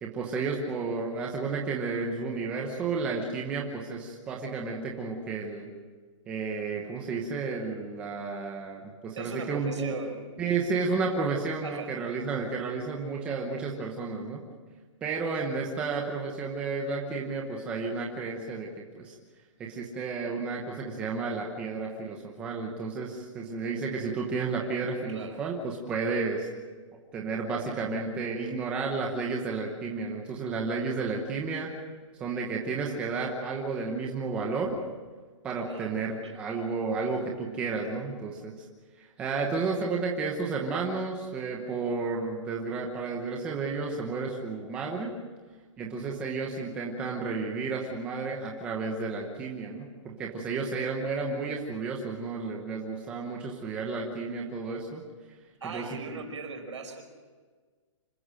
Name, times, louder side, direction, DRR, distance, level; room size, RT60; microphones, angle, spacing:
voice 1, 0.0-5.7 6.3-9.9 10.4-14.4 15.0-19.1 19.6-26.5 26.9-31.7 32.2-34.7 35.4-38.5 39.0-45.1 45.8-55.0 55.7-56.0, right 4 dB, 5° right, 0 dB, 1.0 m, -32 dB
voice 2, 9.2-10.4 11.6-11.9 25.1-25.4 35.7-36.0 36.2-36.4 55.6-57.0, right 4 dB, 65° right, 4 dB, 5.2 m, -39 dB
26.0 x 14.5 x 7.6 m, 1.5 s
hypercardioid pair, 180°, 16 cm